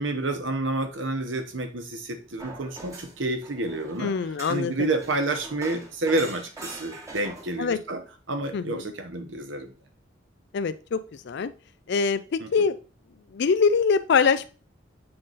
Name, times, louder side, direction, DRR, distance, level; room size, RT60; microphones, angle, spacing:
voice 1, 0.0-4.1 4.5-8.0 8.3-9.7 12.4-12.5, right 2 dB, 70° right, 7 dB, 1.0 m, -29 dB
sound 1, 2.4-7.6, right 2 dB, 15° right, 1.2 m, -43 dB
voice 2, 4.0-4.9 7.6-7.8 8.5-8.8 10.5-11.5 11.9-12.8 13.3-14.5, left 5 dB, 60° left, 13 dB, 0.4 m, -24 dB
7.7 x 3.8 x 4.0 m, 0.36 s
head